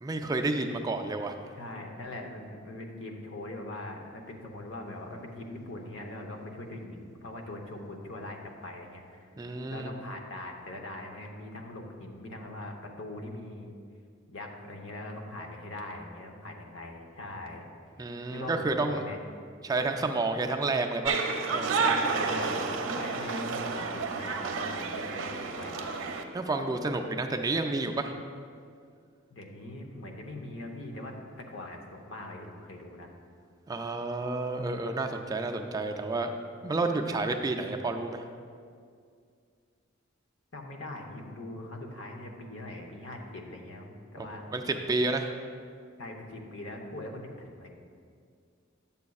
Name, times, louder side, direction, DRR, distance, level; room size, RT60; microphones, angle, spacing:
voice 1, 0.0-1.3 9.4-9.9 18.0-19.0 19.6-21.2 21.5-21.9 26.3-28.1 33.7-36.4 36.6-38.2 44.2-44.3 44.5-45.3, right 3 dB, 20° right, 5 dB, 0.3 m, -30 dB
voice 2, 1.6-9.3 9.7-13.7 14.3-17.6 18.3-19.2 22.2-22.7 22.9-25.9 29.3-33.1 40.5-44.5 46.0-47.7, left 1 dB, 70° left, 2 dB, 0.9 m, -41 dB
sound 1, 21.0-26.2, right 4 dB, 75° right, 0.6 m, -30 dB
10.5 x 7.0 x 2.3 m, 2.2 s
head